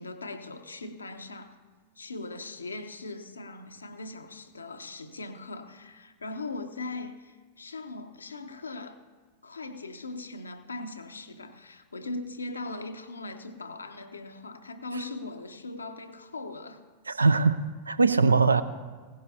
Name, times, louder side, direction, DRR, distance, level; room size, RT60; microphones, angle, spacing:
voice 1, 0.0-1.6 2.0-9.0 9.4-16.8 17.1-17.3, left 2 dB, 75° left, 0.8 m, -40 dB
voice 2, 17.1-18.6, right 4 dB, 75° right, 0.5 m, -22 dB
17.0 x 15.5 x 2.7 m
figure-of-eight pair, 90°, 0 cm